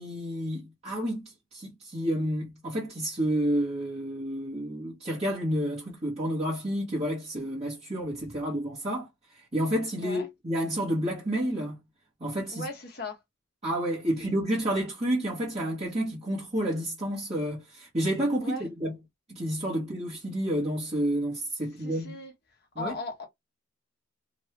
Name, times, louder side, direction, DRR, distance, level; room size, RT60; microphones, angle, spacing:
voice 1, 0.0-11.8 12.2-12.7 13.6-18.9 19.3-22.1 22.8-22.9, equal, 30° right, 1.0 m, -30 dB
voice 2, 12.5-13.2 18.4-18.7 21.8-22.3 22.8-23.3, left 2 dB, 55° left, 1.1 m, -37 dB
3.0 x 2.3 x 3.1 m
head